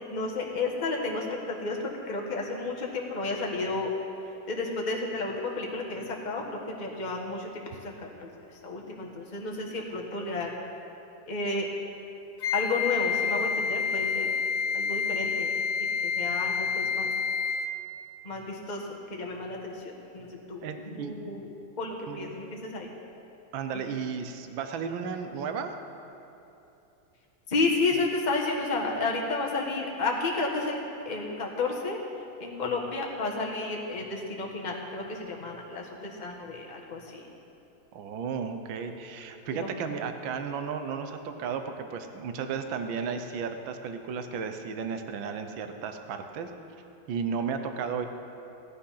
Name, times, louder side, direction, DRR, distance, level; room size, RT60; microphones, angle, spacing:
voice 1, 0.1-3.9 4.5-6.4 6.8-7.5 7.8-8.3 8.6-10.5 11.3-11.7 12.5-14.3 14.7-15.5 16.0-17.1 18.2-20.6 20.9-21.5 21.8-22.9 27.5-32.0 32.4-37.3 39.5-39.7, left 3 dB, 25° left, -1 dB, 1.4 m, -32 dB
Wind instrument woodwind instrument, 12.4-17.8, left 6 dB, 75° left, 1.5 m, -28 dB
voice 2, 20.6-21.1 22.1-22.3 23.5-25.7 37.9-46.5 47.1-48.1, right 6 dB, 75° right, 7 dB, 1.6 m, -34 dB
17.0 x 10.0 x 5.7 m, 2.9 s
omnidirectional pair, 2.2 m